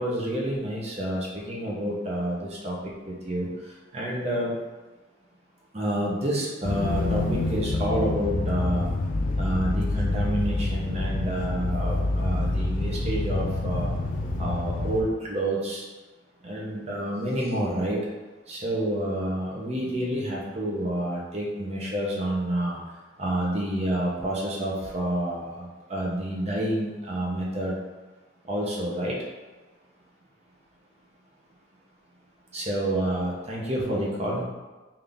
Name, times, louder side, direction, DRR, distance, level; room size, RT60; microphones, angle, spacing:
voice 1, 0.0-4.5 5.7-8.9 9.3-13.9 14.4-15.8 16.4-18.0 18.5-22.8 23.2-27.7 28.4-29.1 32.5-34.4, right 1 dB, 35° right, -4 dB, 0.8 m, -29 dB
sound 1, 6.6-15.0, left 2 dB, 40° left, 0.4 m, -27 dB
3.9 x 2.7 x 3.4 m, 1.2 s
head